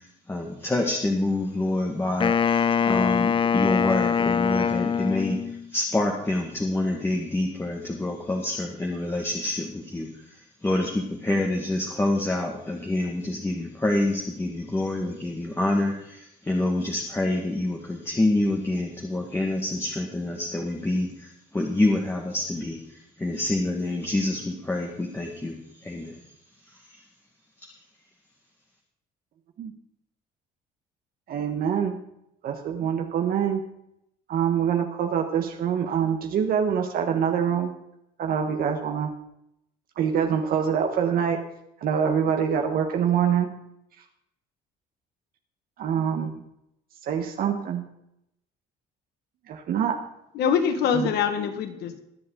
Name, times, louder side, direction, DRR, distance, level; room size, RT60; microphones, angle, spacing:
voice 1, 0.3-5.4 5.7-10.1 10.6-21.3 21.5-22.8 23.2-25.6 25.8-26.2, left 2 dB, 15° left, 0 dB, 1.8 m, -27 dB
Wind instrument woodwind instrument, 2.2-5.7, left 7 dB, 30° left, 0.5 m, -23 dB
voice 2, 31.3-32.0 32.4-33.6 34.3-37.7 38.2-39.1 40.0-41.4 41.8-43.5 45.8-46.3 47.1-47.8 49.5-50.0 50.9-51.1, right 8 dB, 60° right, 4 dB, 1.4 m, -25 dB
voice 3, 50.3-52.0, left 7 dB, 75° left, 7 dB, 1.7 m, -24 dB
21.5 x 7.7 x 3.9 m, 0.81 s
cardioid pair, 110°, 17 cm